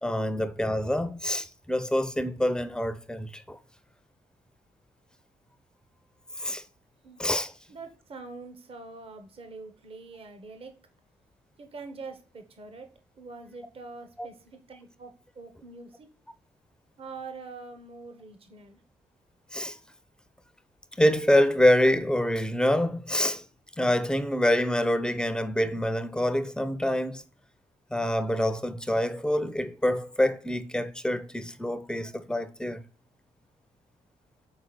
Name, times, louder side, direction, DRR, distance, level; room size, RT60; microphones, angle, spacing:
voice 1, 0.0-3.6 6.4-6.6 7.2-7.5 14.2-14.3 19.5-19.8 21.0-23.4 23.8-27.2 27.9-32.8, left 1 dB, 5° left, 0.6 m, -26 dB
voice 2, 7.7-10.7 11.6-12.9 13.2-16.1 17.0-18.8, right 3 dB, 50° right, 1.1 m, -44 dB
6.0 x 3.9 x 4.1 m
cardioid pair, 80°, 13 cm